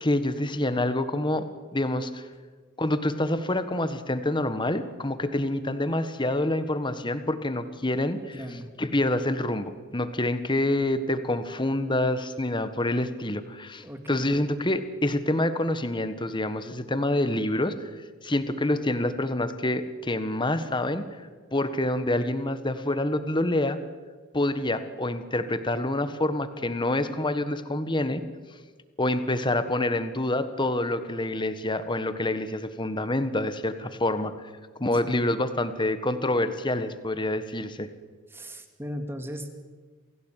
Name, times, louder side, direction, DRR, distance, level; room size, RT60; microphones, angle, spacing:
voice 1, 0.0-1.4 1.7-2.2 2.8-8.4 8.8-17.9 18.2-21.0 21.5-23.8 24.3-28.2 29.0-34.5 34.8-37.9, left 1 dB, 25° left, 11 dB, 1.5 m, -27 dB
voice 2, 8.3-8.7 13.8-14.3 38.3-39.5, equal, 10° right, 6 dB, 2.5 m, -37 dB
28.0 x 17.0 x 9.2 m, 1.5 s
head